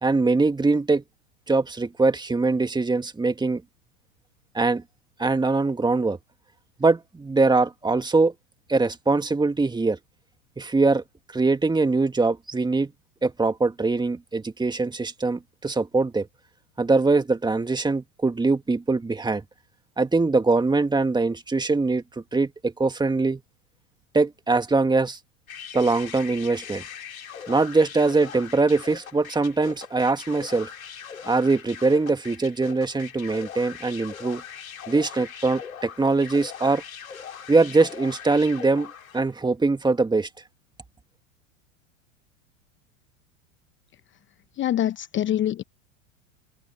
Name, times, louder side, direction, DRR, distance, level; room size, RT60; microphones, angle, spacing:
voice 1, 0.0-1.0 1.5-3.6 4.5-4.8 5.2-6.2 6.8-8.3 8.7-10.0 10.6-11.0 11.3-12.9 13.2-16.3 16.8-19.4 20.0-23.4 24.1-25.2 25.7-26.8 27.5-30.7 31.3-34.4 34.9-36.8 37.5-40.3, right 3 dB, 10° right, 2.0 m, -22 dB
sound 1, 25.5-39.3, left 8 dB, 90° left, 3.1 m, -41 dB
voice 2, 44.6-45.6, left 11 dB, 30° left, 0.9 m, -24 dB
hypercardioid pair, 95°, 40 cm